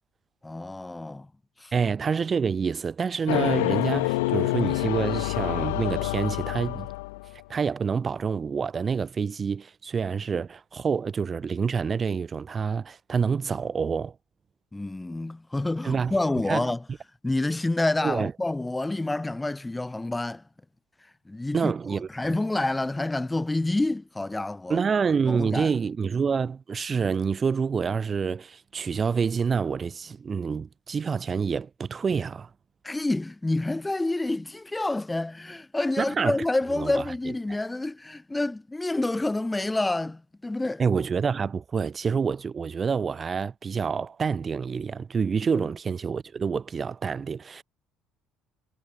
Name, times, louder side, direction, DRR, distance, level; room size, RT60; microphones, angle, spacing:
voice 1, 0.4-1.3 1.6-1.7 14.7-16.8 17.2-20.4 21.3-21.7 22.1-24.8 25.2-25.7 32.8-40.8 45.6-45.7, left 2 dB, 15° left, 2.9 m, -28 dB
voice 2, 1.7-6.9 7.5-14.1 15.8-16.1 16.5-16.7 18.0-18.3 21.5-22.1 24.7-32.5 36.0-36.4 36.7-37.0 37.5-37.6 40.8-47.6, right 6 dB, 35° right, 1.1 m, -27 dB
sound 1, 3.3-7.4, left 22 dB, 75° left, 1.4 m, -27 dB
figure-of-eight pair, 55°, 0 cm